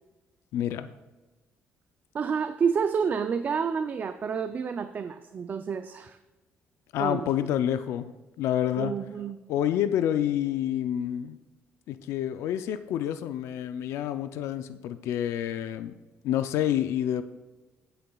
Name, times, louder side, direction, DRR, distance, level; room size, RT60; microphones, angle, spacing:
voice 1, 0.5-0.9 6.9-8.9 9.5-11.4 11.9-15.9 16.2-17.2, left 11 dB, 85° left, 11 dB, 0.4 m, -28 dB
voice 2, 2.1-6.2 7.0-7.3 8.8-9.4, right 6 dB, 40° right, 9 dB, 0.4 m, -29 dB
19.0 x 6.7 x 2.3 m, 1.1 s
cardioid pair, 100°, 5 cm